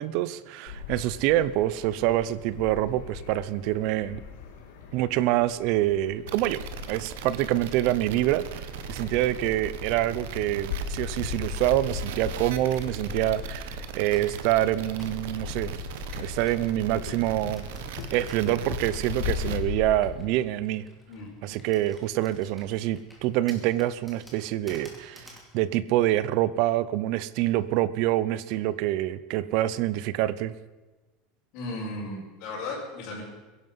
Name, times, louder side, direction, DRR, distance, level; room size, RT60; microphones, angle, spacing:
voice 1, 0.0-4.2 4.9-6.6 6.9-15.7 16.2-17.7 18.1-20.9 21.4-30.5, right 14 dB, 50° right, 17 dB, 0.7 m, -26 dB
sound 1, 0.7-20.2, left 7 dB, 90° left, 3.0 m, -38 dB
sound 2, 6.3-19.6, right 8 dB, 80° right, 1.4 m, -39 dB
Computer keyboard, 6.6-14.4 15.0-25.5, equal, ahead, 2.6 m, -52 dB
voice 2, 21.1-21.6 31.5-33.2, left 2 dB, 45° left, -6 dB, 5.4 m, -36 dB
22.0 x 11.0 x 5.6 m, 1.2 s
supercardioid pair, 165°, 0 cm